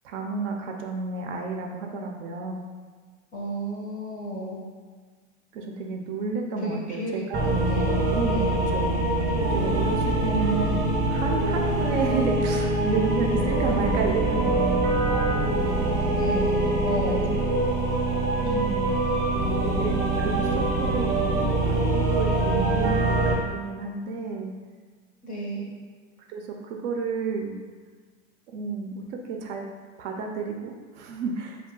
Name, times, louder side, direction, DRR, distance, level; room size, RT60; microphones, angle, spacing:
voice 1, 0.0-2.6 5.5-7.5 8.1-8.4 8.7-9.0 9.5-15.4 17.1-17.4 18.4-19.1 19.6-21.2 21.6-24.5 26.3-27.6 28.5-29.6 30.0-31.6, right 4 dB, 60° right, 2 dB, 0.5 m, -31 dB
voice 2, 3.3-4.6 6.6-8.6 16.1-17.3 18.5-18.7 25.2-25.7, equal, 20° left, -4 dB, 0.5 m, -33 dB
sound 1, 7.3-23.3, right 2 dB, 25° right, 0.7 m, -24 dB
2.3 x 2.2 x 3.7 m, 1.5 s
supercardioid pair, 125°, 41 cm